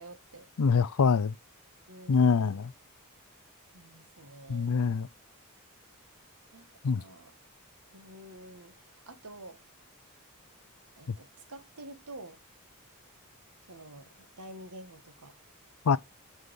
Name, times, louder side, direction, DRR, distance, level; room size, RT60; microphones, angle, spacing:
voice 1, 0.0-0.5 1.9-2.6 3.7-5.0 6.5-6.7 6.9-7.3 7.9-9.6 11.0-12.4 13.7-15.3, right 1 dB, 80° right, 1.7 m, -49 dB
voice 2, 0.6-1.3 2.1-2.7 4.5-5.1 6.8-7.0 15.9-16.0, left 5 dB, 70° left, 0.5 m, -24 dB
9.6 x 4.2 x 5.3 m
head